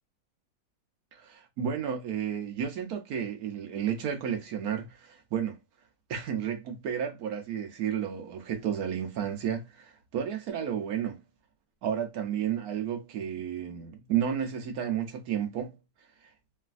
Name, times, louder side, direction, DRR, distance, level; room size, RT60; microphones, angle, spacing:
voice 1, 1.1-5.6 6.1-11.2 11.8-15.8, right 8 dB, 70° right, 0.9 m, -32 dB
3.1 x 2.6 x 2.4 m
omnidirectional pair, 2.1 m